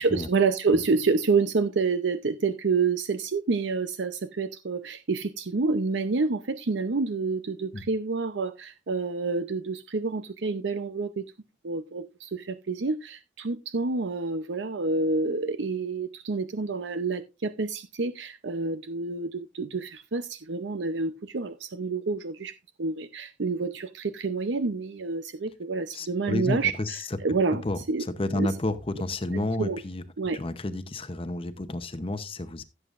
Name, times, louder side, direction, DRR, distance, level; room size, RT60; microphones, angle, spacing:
voice 1, 0.0-11.3 11.6-27.6 27.9-28.0 28.4-28.5 29.6-29.8 30.2-30.4, right 4 dB, 70° right, 0.7 m, -28 dB
voice 2, 25.9-27.2 27.5-30.0 30.3-32.6, left 2 dB, 30° left, 0.8 m, -31 dB
16.0 x 7.9 x 2.5 m
head